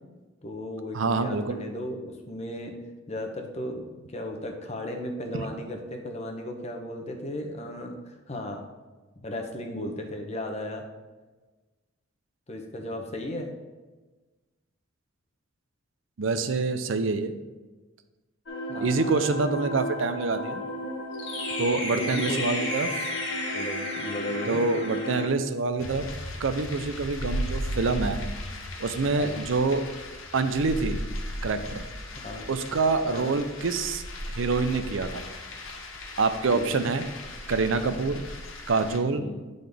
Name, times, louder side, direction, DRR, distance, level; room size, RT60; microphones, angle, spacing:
voice 1, 0.4-2.7 3.1-8.6 9.2-10.8 12.5-13.5 18.7-18.9 19.6-19.7 21.9-22.4 22.7-22.8 23.5-24.6 29.1-29.5 32.2-32.5 33.0-33.3 36.5-36.8 39.1-39.5, left 1 dB, 35° left, 3 dB, 0.8 m, -35 dB
voice 2, 0.9-1.6 16.2-17.3 18.8-20.6 21.6-22.9 24.5-26.1 26.4-28.2 28.8-29.8 30.3-31.0 31.4-31.8 32.5-34.0 34.3-35.2 36.2-37.1 37.5-38.2 38.7-39.3, right 3 dB, 70° right, 10 dB, 0.5 m, -26 dB
sound 1, 18.5-25.3, equal, 60° left, 1.1 m, -32 dB
sound 2, 25.8-39.0, left 1 dB, 85° left, 1.0 m, -36 dB
9.3 x 3.9 x 3.5 m, 1.2 s
head